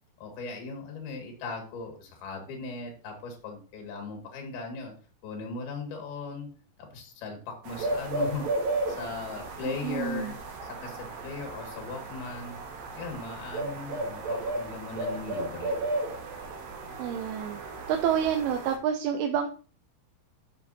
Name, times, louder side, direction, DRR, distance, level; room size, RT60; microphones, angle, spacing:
voice 1, 0.2-4.9 5.2-6.5 6.8-10.4 10.8-12.6 13.0-15.8, left 4 dB, 70° left, 2 dB, 3.9 m, -38 dB
sound 1, 7.6-18.8, right 2 dB, 65° right, 3.2 m, -34 dB
voice 2, 9.6-10.3 17.0-17.6 17.9-19.5, right 8 dB, 80° right, 5 dB, 2.6 m, -28 dB
12.5 x 6.2 x 2.8 m, 0.37 s
omnidirectional pair, 4.5 m